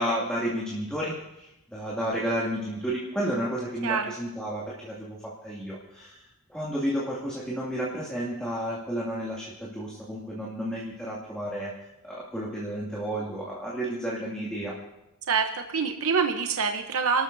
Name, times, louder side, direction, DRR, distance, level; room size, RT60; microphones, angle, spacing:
voice 1, 0.0-6.2 6.5-14.7, equal, 5° left, -7 dB, 2.4 m, -32 dB
voice 2, 15.3-17.2, right 5 dB, 70° right, 5 dB, 0.9 m, -26 dB
30.0 x 13.0 x 2.7 m, 0.90 s
head